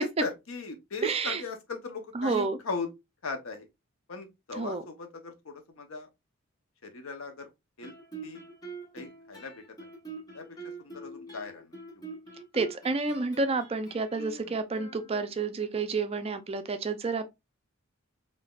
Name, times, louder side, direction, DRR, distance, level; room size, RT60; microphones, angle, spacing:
voice 1, 0.0-2.9 3.2-3.7 4.1-6.1 6.8-7.5 7.8-7.9 8.2-8.4 8.9-9.6 10.3-10.5 10.8-12.1, left 4 dB, 90° left, 0.8 m, -38 dB
voice 2, 1.0-1.4 2.1-2.6 4.6-4.8 12.5-17.3, right 4 dB, 30° right, 0.5 m, -30 dB
Guitar, 7.8-15.5, right 3 dB, 20° left, 1.2 m, -45 dB
3.7 x 2.7 x 2.3 m
head